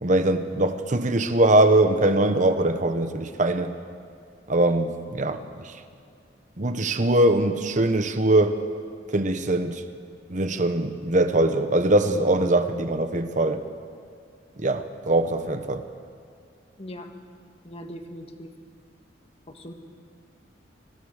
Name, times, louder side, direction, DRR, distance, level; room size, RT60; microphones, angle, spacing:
voice 1, 0.0-3.7 4.5-5.7 6.6-8.6 9.1-9.8 10.3-13.6 14.6-15.8, right 1 dB, 40° right, 9 dB, 1.1 m, -22 dB
voice 2, 16.8-17.1 17.6-18.5 19.5-19.7, equal, 35° left, 5 dB, 1.7 m, -40 dB
25.0 x 17.0 x 6.5 m, 2.4 s
head